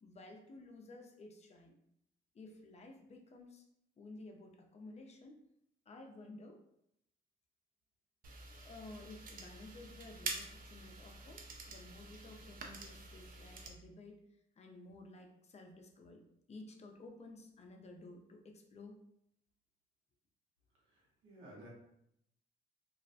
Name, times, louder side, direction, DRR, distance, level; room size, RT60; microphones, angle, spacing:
voice 1, 0.0-1.8 2.3-3.6 4.0-5.4 5.9-6.6 8.6-16.2 16.5-18.9, left 2 dB, 35° left, 3 dB, 0.4 m, -54 dB
sound 1, 8.2-13.7, right 3 dB, 45° right, 0.4 m, -47 dB
voice 2, 20.7-21.7, right 1 dB, 75° right, -4 dB, 1.0 m, -56 dB
2.4 x 2.1 x 2.6 m, 0.76 s
cardioid pair, 90°, 20 cm